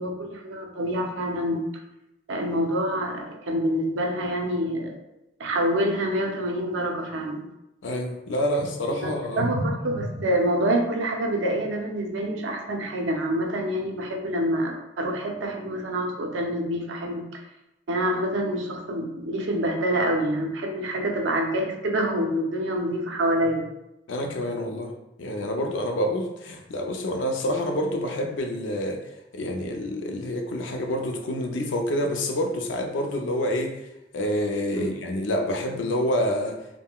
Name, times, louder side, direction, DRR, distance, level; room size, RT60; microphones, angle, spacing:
voice 1, 0.0-1.7 2.3-5.0 5.4-7.4 9.0-17.4 17.9-23.7 34.7-34.9, right 1 dB, 80° right, 3 dB, 0.5 m, -26 dB
voice 2, 7.8-9.5 24.1-24.9 25.2-36.6, equal, 80° left, 3 dB, 0.4 m, -28 dB
3.6 x 2.1 x 2.2 m, 0.91 s
head